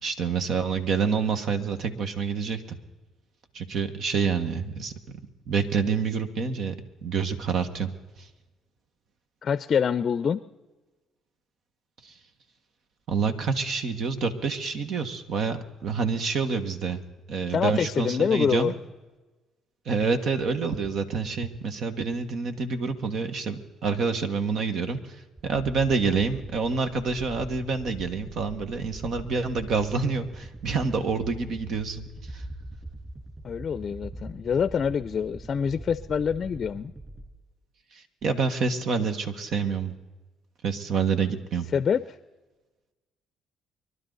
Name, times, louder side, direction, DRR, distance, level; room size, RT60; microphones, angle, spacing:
voice 1, 0.0-2.8 3.5-4.9 5.5-6.7 7.0-7.9 8.2-8.3 12.0-12.1 13.1-17.0 17.3-18.7 19.8-32.4 37.9-39.9 40.6-41.7, right 5 dB, 65° right, 8 dB, 1.6 m, -27 dB
voice 2, 9.4-10.4 17.5-18.7 33.4-36.9 41.7-42.0, left 7 dB, 50° left, 15 dB, 0.5 m, -25 dB
sound 1, 25.4-37.2, right 1 dB, 25° right, 5.7 m, -42 dB
25.5 x 11.5 x 4.0 m, 1.2 s
supercardioid pair, 75°, 0 cm